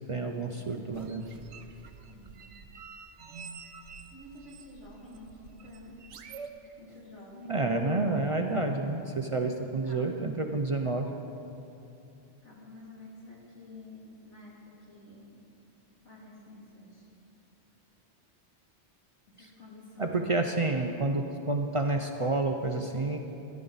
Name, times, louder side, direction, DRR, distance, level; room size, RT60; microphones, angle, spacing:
voice 1, 0.1-1.2 7.5-11.1 19.4-19.5 20.0-23.2, right 2 dB, 40° right, 3 dB, 0.4 m, -29 dB
sound 1, 0.9-6.5, right 5 dB, 80° right, 1.0 m, -48 dB
voice 2, 2.1-2.5 4.1-6.0 6.8-7.7 9.5-10.1 12.4-15.2 16.0-17.1 19.3-20.4, left 2 dB, 75° left, -6 dB, 3.1 m, -50 dB
14.0 x 11.0 x 4.0 m, 2.8 s
omnidirectional pair, 1.2 m